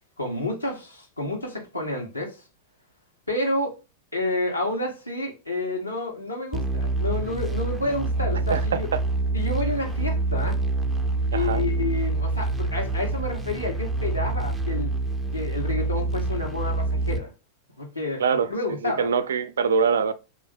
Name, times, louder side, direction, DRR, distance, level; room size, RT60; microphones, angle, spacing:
voice 1, 0.2-2.4 3.3-3.8 4.1-8.9 9.3-10.6 11.3-14.9 15.3-17.3 17.8-19.1, left 2 dB, 85° left, 1.1 m, -29 dB
sound 1, 6.5-17.2, right 3 dB, 5° right, 0.5 m, -26 dB
voice 2, 11.3-11.7 18.2-18.5 18.8-20.1, right 6 dB, 65° right, 0.4 m, -23 dB
3.4 x 2.5 x 4.1 m
figure-of-eight pair, 90°, 0 cm